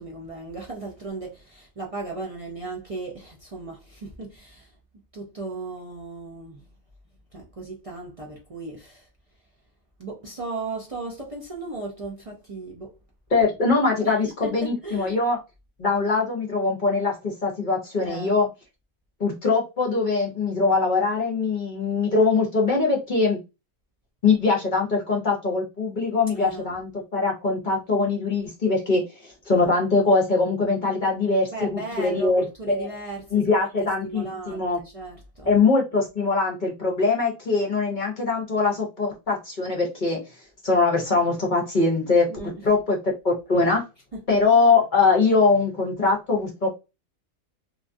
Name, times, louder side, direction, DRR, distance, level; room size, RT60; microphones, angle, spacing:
voice 1, 0.0-4.7 5.1-6.7 7.3-9.1 10.0-13.0 14.0-15.1 18.0-18.3 26.3-26.8 31.5-35.6 42.3-42.5 44.1-44.2, right 3 dB, 60° right, 0.3 m, -36 dB
voice 2, 13.3-15.4 15.8-18.5 19.2-23.4 24.2-32.9 33.3-34.8 35.5-40.2 40.6-43.8 44.3-46.7, left 3 dB, 40° left, 0.8 m, -22 dB
2.9 x 2.3 x 2.5 m
omnidirectional pair, 1.5 m